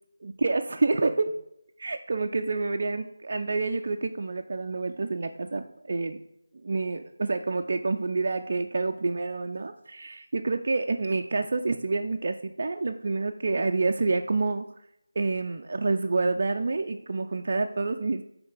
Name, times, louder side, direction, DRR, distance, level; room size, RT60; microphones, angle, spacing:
voice 1, 0.2-1.4 1.8-6.2 6.6-14.7 15.2-18.2, right 3 dB, 45° right, 5 dB, 0.3 m, -28 dB
6.2 x 4.4 x 3.9 m, 0.79 s
figure-of-eight pair, 160°, 0 cm